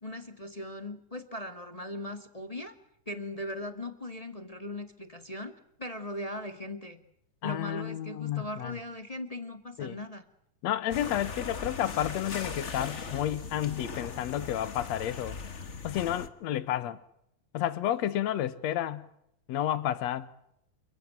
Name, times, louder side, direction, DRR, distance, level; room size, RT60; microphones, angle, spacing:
voice 1, 0.0-2.7 3.0-5.5 5.8-7.0 7.4-10.2, left 1 dB, 15° left, 1.4 m, -39 dB
voice 2, 7.4-8.7 9.8-10.0 10.6-15.4 15.8-17.0 17.5-19.1 19.5-20.3, left 12 dB, 65° left, 2.4 m, -31 dB
sound 1, 10.9-16.3, left 5 dB, 40° left, 1.0 m, -39 dB
29.0 x 16.0 x 9.2 m
omnidirectional pair, 3.7 m